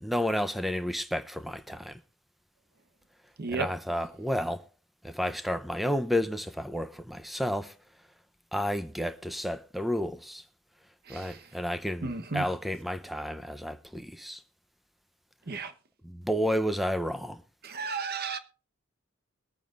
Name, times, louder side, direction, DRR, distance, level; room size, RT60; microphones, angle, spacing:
voice 1, 0.0-2.0 3.5-4.6 5.0-7.7 8.5-10.4 11.1-14.4 16.0-17.4, equal, ahead, 0.7 m, -31 dB
voice 2, 11.1-11.4 12.0-12.4 15.5-15.7 17.6-18.4, right 4 dB, 50° right, 1.1 m, -33 dB
22.5 x 9.1 x 2.5 m
head